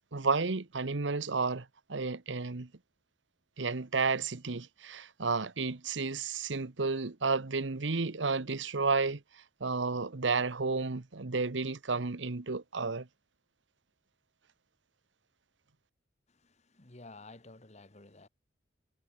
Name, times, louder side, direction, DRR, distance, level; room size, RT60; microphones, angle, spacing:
voice 1, 0.1-2.7 3.6-9.2 9.6-13.1, right 4 dB, 90° right, 1.1 m, -32 dB
voice 2, 16.3-18.3, left 2 dB, 40° left, 1.6 m, -52 dB
head